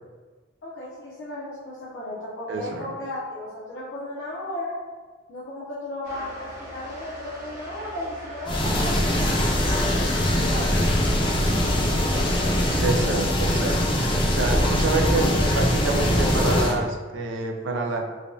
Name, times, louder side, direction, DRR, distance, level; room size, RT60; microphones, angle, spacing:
voice 1, 0.6-4.7 5.3-9.5 10.3-10.7, left 1 dB, 80° left, -9 dB, 0.6 m, -35 dB
voice 2, 2.5-2.9 12.8-13.8 14.3-18.0, right 3 dB, 75° right, 2 dB, 0.4 m, -27 dB
sound 1, 6.0-13.0, equal, 45° right, 1.2 m, -38 dB
sound 2, 8.5-16.7, left 1 dB, 25° left, 0.4 m, -22 dB
3.3 x 2.2 x 2.6 m, 1.4 s
head